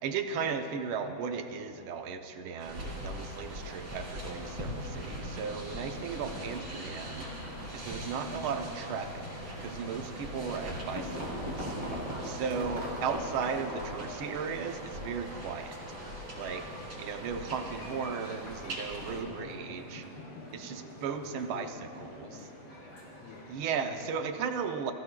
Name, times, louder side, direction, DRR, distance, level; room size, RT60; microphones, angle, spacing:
voice 1, 0.0-7.3 7.7-9.3 9.6-11.7 12.2-15.8 16.3-16.7 17.0-20.0 20.5-21.7 22.0-22.3 23.5-24.9, right 6 dB, 85° right, 6 dB, 1.6 m, -36 dB
sound 1, 2.6-19.2, equal, 60° right, 4.0 m, -42 dB
sound 2, 4.3-24.3, equal, 85° left, 3.1 m, -47 dB
voice 2, 5.9-6.3 15.7-15.9 16.8-17.1 17.4-17.8 19.1-20.8 21.2-22.5 23.2-24.1, left 4 dB, 65° left, 2 dB, 1.5 m, -50 dB
sound 3, 10.9-14.0, equal, 15° right, 3.6 m, -38 dB
20.5 x 15.0 x 2.3 m, 2.9 s
omnidirectional pair, 2.3 m